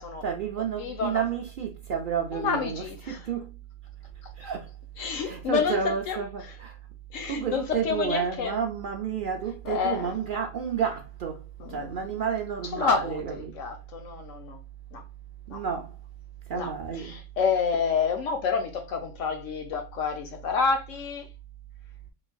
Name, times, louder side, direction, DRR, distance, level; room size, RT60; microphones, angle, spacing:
voice 1, 0.2-3.6 4.4-4.7 5.1-6.8 7.2-11.4 11.7-13.5 15.5-15.9 16.5-17.2, right 7 dB, 60° right, 0.5 m, -31 dB
voice 2, 0.8-1.2 2.3-3.2 5.0-6.2 7.1-8.5 9.6-10.1 11.6-12.0 12.7-14.6 14.9-15.0 15.5-15.6 16.5-21.3, left 5 dB, 85° left, 1.2 m, -29 dB
4.1 x 3.1 x 2.2 m
omnidirectional pair, 1.3 m